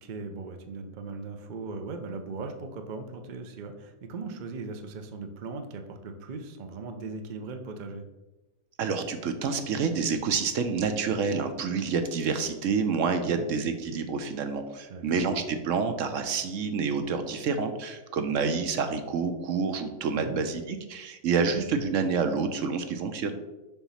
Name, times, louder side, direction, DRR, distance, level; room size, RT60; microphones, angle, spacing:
voice 1, 0.0-8.0 13.3-13.5 14.9-15.2 20.1-20.4, right 4 dB, 50° right, 6 dB, 0.6 m, -38 dB
voice 2, 8.8-23.3, right 5 dB, 65° right, 8 dB, 0.9 m, -28 dB
7.0 x 3.0 x 5.5 m, 1.0 s
omnidirectional pair, 1.5 m